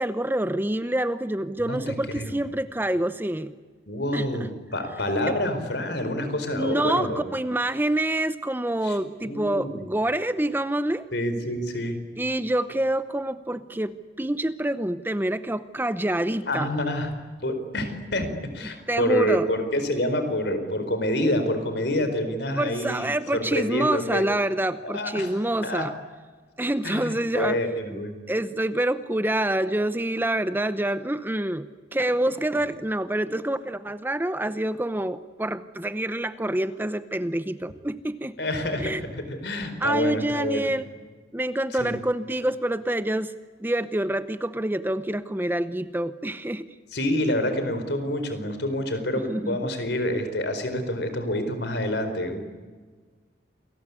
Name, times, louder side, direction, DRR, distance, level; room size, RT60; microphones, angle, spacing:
voice 1, 0.0-3.5 4.1-4.3 5.3-5.4 6.5-11.1 12.2-16.7 18.6-19.5 22.6-25.9 26.6-28.0 28.3-38.4 38.8-39.0 39.8-40.9 41.3-46.7 49.1-49.7, right 1 dB, 10° right, 12 dB, 0.7 m, -27 dB
voice 2, 1.7-2.4 3.9-7.2 8.8-9.8 11.1-12.0 16.5-17.1 17.4-24.3 24.8-25.3 25.6-25.9 26.8-28.2 38.4-40.7 41.8-42.0 46.9-52.4, left 1 dB, 60° left, 8 dB, 4.6 m, -27 dB
28.5 x 21.0 x 9.8 m, 1.4 s
head